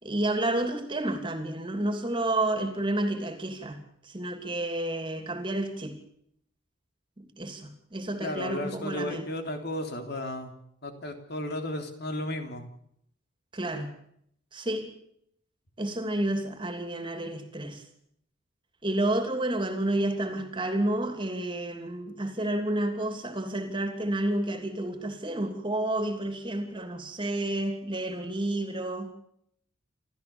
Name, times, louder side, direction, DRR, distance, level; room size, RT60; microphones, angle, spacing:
voice 1, 0.0-6.0 7.2-9.3 13.5-13.9 14.5-14.9 15.8-17.8 18.8-29.1, right 1 dB, 25° right, 7 dB, 2.9 m, -30 dB
voice 2, 8.2-10.5 10.8-12.6, left 1 dB, 55° left, 6 dB, 3.3 m, -34 dB
28.5 x 13.5 x 7.2 m, 0.72 s
head